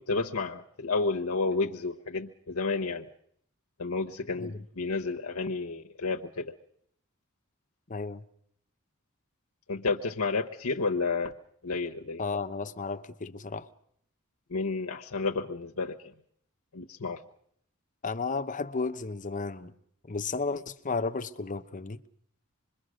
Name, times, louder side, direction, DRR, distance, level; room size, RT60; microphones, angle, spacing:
voice 1, 0.0-3.1 3.8-6.5 9.7-11.3 11.6-12.2 14.5-16.1 16.7-17.2, left 3 dB, 85° left, 1.1 m, -31 dB
voice 2, 7.9-8.2 12.2-13.7 18.0-19.7 20.1-22.0, left 4 dB, 35° left, 1.0 m, -33 dB
25.5 x 22.0 x 6.4 m
head